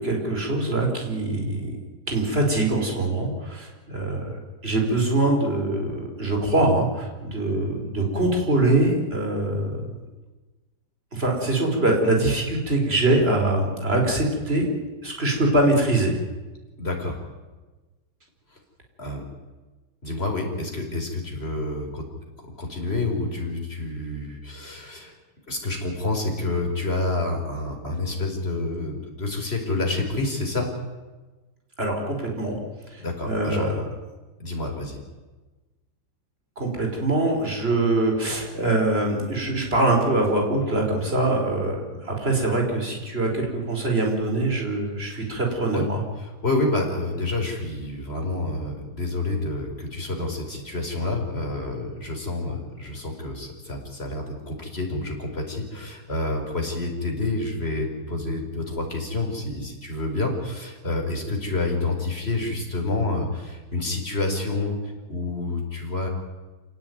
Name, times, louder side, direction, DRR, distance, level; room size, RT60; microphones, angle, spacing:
voice 1, 0.0-1.8 2.1-4.3 4.6-9.8 11.1-14.7 15.0-16.1 31.8-32.6 32.9-33.7 36.6-46.0, right 2 dB, 30° right, 2 dB, 5.1 m, -23 dB
voice 2, 16.8-17.2 19.0-19.2 20.0-22.0 22.6-25.1 25.5-30.7 33.0-33.7 34.4-35.0 45.7-45.8 46.2-64.8 65.1-66.1, left 2 dB, 30° left, 2 dB, 5.1 m, -28 dB
27.5 x 17.5 x 9.5 m, 1.2 s
omnidirectional pair, 2.0 m